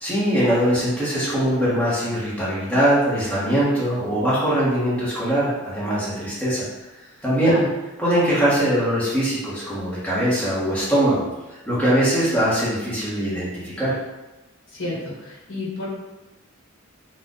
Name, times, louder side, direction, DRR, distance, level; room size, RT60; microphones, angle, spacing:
voice 1, 0.0-6.6 7.2-7.6 8.0-11.2 11.7-13.9, right 1 dB, 5° left, -9 dB, 1.4 m, -21 dB
voice 2, 14.8-15.9, left 2 dB, 65° left, -6 dB, 1.4 m, -29 dB
4.4 x 2.5 x 3.9 m, 1.1 s
head